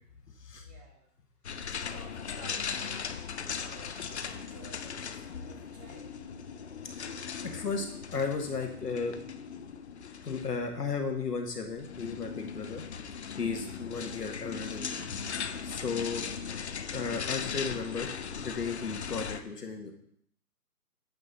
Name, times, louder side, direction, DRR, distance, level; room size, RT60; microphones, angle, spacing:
voice 1, 0.6-1.1 1.7-3.1 3.6-6.1, right 3 dB, 30° right, 0 dB, 1.6 m, -52 dB
sound 1, 1.4-19.4, left 6 dB, 50° left, 0.4 m, -39 dB
voice 2, 6.9-9.2 10.2-12.8 13.4-15.2 15.6-16.3 16.9-19.9, left 5 dB, 85° left, 3 dB, 1.6 m, -35 dB
7.9 x 5.8 x 4.0 m, 0.68 s
hypercardioid pair, 150°, 47 cm